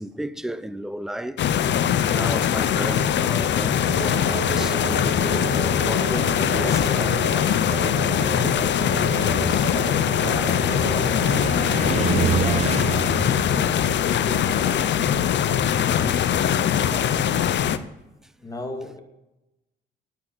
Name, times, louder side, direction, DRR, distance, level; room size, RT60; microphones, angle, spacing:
voice 1, 0.0-1.5 2.1-5.5 5.8-7.3 16.6-16.9 17.7-17.8, right 1 dB, ahead, 0.7 m, -34 dB
sound 1, 1.4-17.8, left 9 dB, 65° left, 0.8 m, -22 dB
sound 2, 3.9-12.6, right 6 dB, 75° right, 1.5 m, -33 dB
Car, 8.2-16.4, right 8 dB, 35° right, 0.4 m, -30 dB
voice 2, 9.2-16.2 16.8-17.6 18.4-19.0, left 1 dB, 20° left, 2.4 m, -37 dB
9.6 x 8.6 x 7.5 m
cardioid pair, 90°, 20 cm